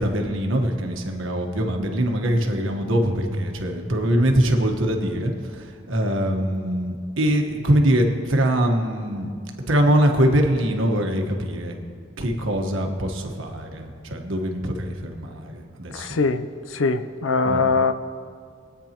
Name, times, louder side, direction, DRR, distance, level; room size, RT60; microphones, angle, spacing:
voice 1, 0.0-9.3 9.7-11.7 12.2-16.1 17.4-17.6, equal, 80° right, 3 dB, 1.3 m, -23 dB
voice 2, 15.9-16.4 16.7-17.9, left 4 dB, 85° left, 11 dB, 0.6 m, -21 dB
22.0 x 9.1 x 3.0 m, 2.2 s
head